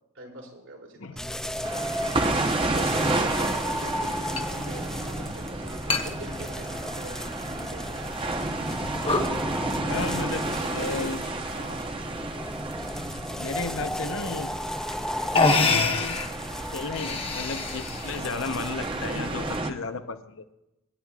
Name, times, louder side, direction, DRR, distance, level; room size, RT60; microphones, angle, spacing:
voice 1, 0.1-1.3 2.5-8.2 10.4-10.9 11.4-11.9 13.7-14.3 15.7-16.0, right 1 dB, 75° right, -3 dB, 4.8 m, -43 dB
sound 1, 1.2-19.6, equal, 5° left, 0.5 m, -35 dB
sound 2, 1.6-19.7, right 2 dB, 25° right, 0.8 m, -31 dB
sound 3, 4.4-4.5 4.8-4.9 5.9-6.1 6.5-7.2 7.8-7.9 8.5-8.7 9.0-9.3 10.6-11.0 11.8-12.3 14.2-14.3 14.9-15.0 15.3-16.3 16.8-18.2, left 3 dB, 25° left, 1.0 m, -26 dB
voice 2, 9.9-10.5 10.7-11.2 13.4-14.5 15.3-16.2 16.7-20.4, left 4 dB, 65° left, 9 dB, 0.8 m, -33 dB
25.5 x 11.5 x 2.4 m, 0.91 s
head